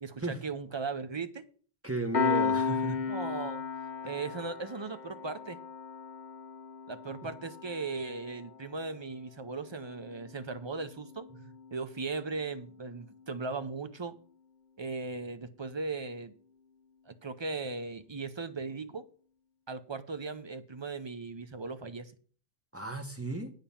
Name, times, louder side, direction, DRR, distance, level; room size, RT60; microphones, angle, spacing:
voice 1, 0.0-1.4 3.1-3.6 4.0-5.6 6.9-11.3 11.7-14.2 14.8-16.3 17.1-19.0 19.7-22.1, right 4 dB, 35° right, 0.5 m, -38 dB
voice 2, 1.8-3.0 22.7-23.5, right 2 dB, 10° right, 1.0 m, -34 dB
Piano, 2.1-13.2, left 5 dB, 40° left, 0.9 m, -36 dB
8.8 x 5.7 x 7.1 m
omnidirectional pair, 1.3 m